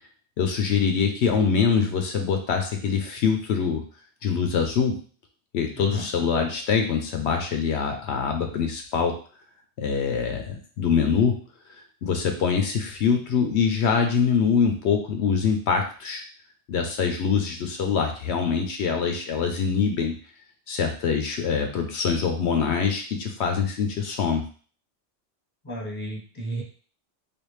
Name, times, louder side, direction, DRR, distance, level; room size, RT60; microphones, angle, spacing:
voice 1, 0.4-3.8 4.2-5.0 5.5-9.2 9.8-11.4 12.0-16.2 16.7-20.1 20.7-24.4, left 6 dB, 75° left, 4 dB, 0.9 m, -24 dB
voice 2, 5.7-6.1 25.6-26.6, right 1 dB, 10° left, -2 dB, 0.9 m, -33 dB
3.3 x 2.5 x 3.1 m, 0.42 s
omnidirectional pair, 1.2 m